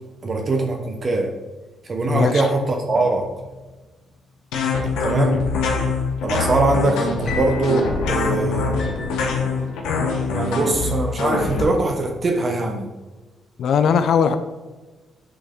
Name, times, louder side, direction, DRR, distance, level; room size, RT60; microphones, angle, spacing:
voice 1, 0.2-1.3 1.9-3.3 5.0-5.4 6.2-8.8 10.3-12.9, right 2 dB, 40° right, 3 dB, 0.8 m, -22 dB
voice 2, 2.1-2.4 13.6-14.4, left 7 dB, 70° left, 10 dB, 0.5 m, -18 dB
sound 1, 2.9-3.9 7.2-11.8, left 2 dB, 45° left, 1.4 m, -35 dB
sound 2, 4.5-11.6, left 4 dB, 90° left, 1.2 m, -23 dB
8.4 x 3.9 x 3.7 m, 1.2 s
cardioid pair, 90°, 0 cm